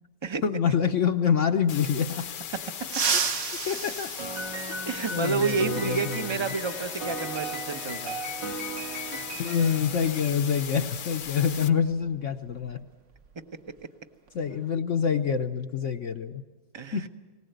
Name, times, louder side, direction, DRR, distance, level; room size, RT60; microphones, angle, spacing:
voice 1, 0.4-2.3 3.7-4.1 4.8-4.9 5.1-6.5 9.1-12.9 14.3-16.4 16.9-17.0, left 7 dB, 55° left, 7 dB, 0.9 m, -26 dB
sound 1, 1.7-11.7, left 8 dB, 75° left, 1.5 m, -38 dB
sound 2, 2.8-5.2 6.9-7.0 8.2-8.3 9.9-10.1 10.5-10.7 11.2-13.3 13.6-13.9 14.3-14.7, right 6 dB, 50° right, 1.1 m, -32 dB
Piano, 4.2-10.7, right 3 dB, 75° right, 2.8 m, -37 dB
voice 2, 4.8-8.2 8.9-9.6 16.7-17.0, right 4 dB, 25° right, 8 dB, 0.5 m, -30 dB
19.5 x 19.0 x 8.0 m, 1.3 s
omnidirectional pair, 2.0 m